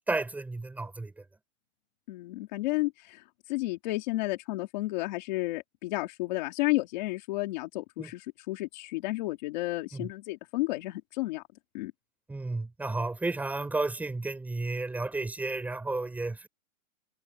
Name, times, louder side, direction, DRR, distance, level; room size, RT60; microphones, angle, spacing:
voice 1, 0.1-1.1 8.0-8.1 9.9-10.1 12.3-16.5, right 2 dB, 5° right, 5.7 m, -32 dB
voice 2, 2.1-11.4 11.7-11.9, left 20 dB, 30° left, 2.7 m, -32 dB
supercardioid pair, 180°, 41 cm